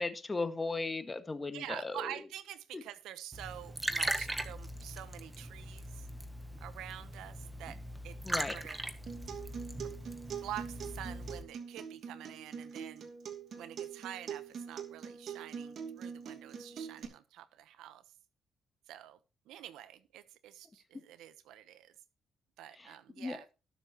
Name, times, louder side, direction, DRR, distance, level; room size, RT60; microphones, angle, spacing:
voice 1, 0.0-2.1 2.7-2.8 8.2-8.6 22.7-23.4, left 3 dB, 25° left, 8 dB, 1.8 m, -37 dB
voice 2, 1.5-6.1 6.6-7.8 8.0-8.2 8.5-8.8 9.8-10.0 10.4-13.1 13.6-18.0 18.9-19.2 19.5-21.9 22.6-23.5, right 12 dB, 90° right, 14 dB, 0.9 m, -47 dB
Liquid, 3.3-11.4, right 1 dB, 10° right, 1.7 m, -40 dB
Acoustic guitar, 9.1-17.0, right 7 dB, 60° right, 2.6 m, -44 dB
19.0 x 7.0 x 3.0 m, 0.31 s
cardioid pair, 90°, 0 cm